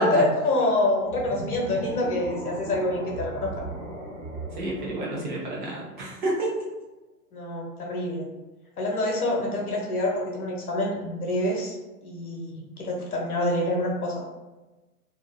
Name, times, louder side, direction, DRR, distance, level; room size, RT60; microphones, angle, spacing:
voice 1, 0.0-3.6 7.3-8.3 8.8-11.8 12.0-14.2, left 1 dB, 65° left, -1 dB, 1.0 m, -26 dB
sound 1, 1.1-6.3, right 1 dB, 15° right, 1.0 m, -37 dB
voice 2, 4.5-6.5, right 1 dB, 35° right, -4 dB, 0.5 m, -28 dB
2.6 x 2.2 x 2.6 m, 1.1 s
figure-of-eight pair, 120°, 47 cm